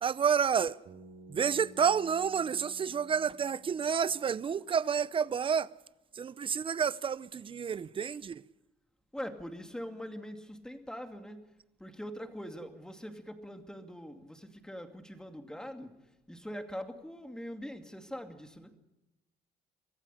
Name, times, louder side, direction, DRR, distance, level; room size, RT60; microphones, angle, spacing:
voice 1, 0.0-0.8 1.3-5.7 6.1-8.4, right 7 dB, 30° right, 0.7 m, -29 dB
Bass guitar, 0.9-4.8, equal, 60° right, 4.6 m, -55 dB
voice 2, 9.1-11.5 11.8-18.8, equal, 5° left, 2.5 m, -43 dB
24.5 x 14.5 x 10.0 m
cardioid pair, 110°, 17 cm